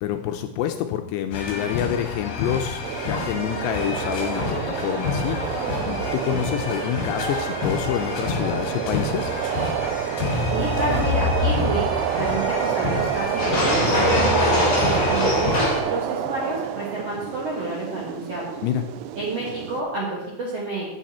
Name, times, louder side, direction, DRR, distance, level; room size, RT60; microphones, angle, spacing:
voice 1, 0.0-9.3 18.6-18.8, left 10 dB, 80° left, 6 dB, 2.6 m, -27 dB
sound 1, 1.3-15.8, left 5 dB, 60° left, 3.3 m, -30 dB
sound 2, 2.8-19.8, right 11 dB, 85° right, 2.4 m, -28 dB
sound 3, 10.2-12.0 13.3-15.8, left 2 dB, 30° left, 3.4 m, -23 dB
voice 2, 10.5-11.8 12.2-18.5 19.1-21.0, right 2 dB, 65° right, -5 dB, 1.5 m, -29 dB
9.2 x 9.1 x 4.2 m, 0.94 s
omnidirectional pair, 5.2 m